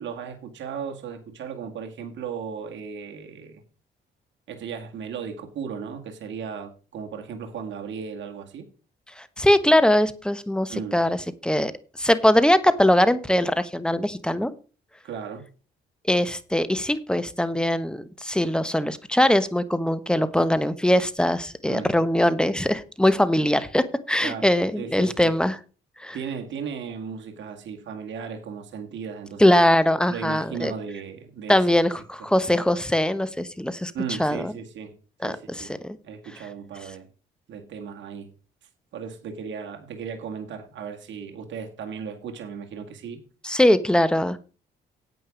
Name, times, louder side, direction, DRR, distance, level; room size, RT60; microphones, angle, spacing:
voice 1, 0.0-3.6 4.5-8.7 10.7-11.0 15.0-15.4 21.7-22.0 24.2-24.5 24.8-25.4 26.1-29.5 30.1-31.7 33.9-34.9 35.2-35.7 36.0-37.1 37.5-38.3 38.9-43.2, right 6 dB, 70° right, 2.1 m, -36 dB
voice 2, 9.4-11.2 11.4-11.7 12.0-14.5 16.1-25.6 26.0-26.2 29.4-30.7 31.5-33.9 34.2-34.5 35.2-36.0 43.4-44.4, left 1 dB, 5° left, 1.1 m, -21 dB
9.1 x 8.7 x 5.2 m
cardioid pair, 90°, 20 cm